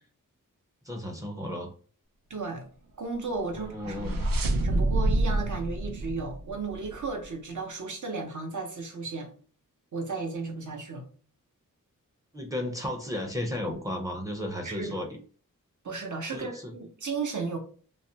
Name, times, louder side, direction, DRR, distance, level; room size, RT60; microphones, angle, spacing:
voice 1, 0.8-1.7 3.5-4.3 12.3-15.2 16.3-16.7, left 1 dB, 10° right, 0.5 m, -34 dB
voice 2, 2.3-2.7 3.0-4.2 4.6-9.3 9.9-11.0 14.6-15.0 15.8-17.6, right 4 dB, 60° right, 0.8 m, -34 dB
sound 1, 3.4-7.1, right 1 dB, 90° right, 0.5 m, -28 dB
2.4 x 2.1 x 2.7 m
wide cardioid pair, 75°, 33 cm